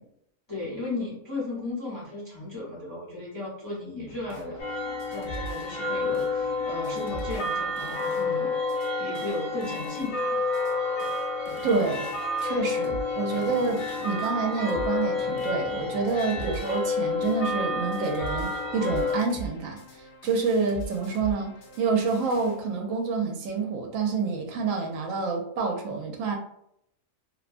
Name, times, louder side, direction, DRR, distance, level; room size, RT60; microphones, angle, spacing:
voice 1, 0.5-8.6 9.0-10.4, left 2 dB, 25° left, -6 dB, 0.6 m, -35 dB
sound 1, 4.1-22.6, right 1 dB, 60° left, 0.8 m, -43 dB
sound 2, 4.6-19.2, left 3 dB, 80° left, 1.1 m, -30 dB
voice 2, 11.6-12.1 12.4-21.5 21.8-26.4, right 4 dB, 75° right, 2 dB, 0.9 m, -28 dB
2.7 x 2.1 x 2.4 m, 0.74 s
omnidirectional pair, 1.4 m